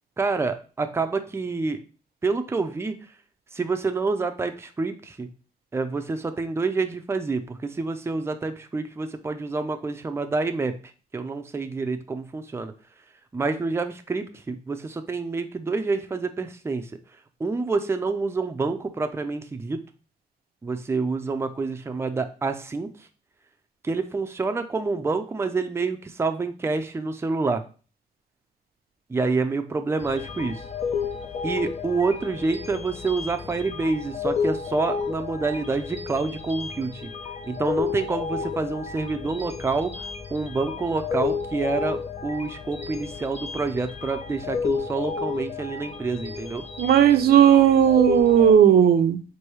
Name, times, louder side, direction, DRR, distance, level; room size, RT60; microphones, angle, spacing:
voice 1, 0.2-1.8 2.2-3.1 3.5-5.3 5.7-10.8 11.1-12.7 13.3-16.9 17.4-19.8 20.6-23.1 23.8-27.6 29.1-30.6 31.4-37.1 37.5-46.6, right 3 dB, 15° right, 7 dB, 0.4 m, -27 dB
sound 1, 30.0-48.5, left 6 dB, 45° left, 0.5 m, -32 dB
voice 2, 46.8-49.2, right 9 dB, 85° right, 8 dB, 0.5 m, -16 dB
4.7 x 2.7 x 3.0 m, 0.36 s
wide cardioid pair, 135°, 16 cm